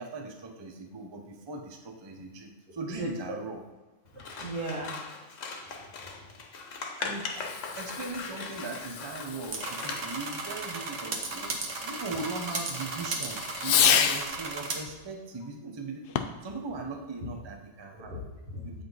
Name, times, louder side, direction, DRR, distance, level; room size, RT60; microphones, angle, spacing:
voice 1, 0.0-3.6 7.0-7.3 7.8-16.2 16.4-18.2 18.6-18.8, right 3 dB, 30° right, 2 dB, 0.5 m, -39 dB
voice 2, 2.9-3.4 4.1-5.0 5.6-5.7 6.1-6.2 7.3-7.4 17.9-18.8, right 1 dB, 75° right, -3 dB, 2.0 m, -38 dB
Scissors, 4.2-10.3, left 4 dB, 60° left, 1.1 m, -39 dB
Fireworks, 7.3-14.4 16.0-16.5, left 8 dB, 90° left, 0.5 m, -31 dB
sound 1, 9.4-14.8, right 3 dB, 60° right, 1.2 m, -35 dB
7.8 x 5.2 x 3.9 m, 1.2 s
omnidirectional pair, 1.5 m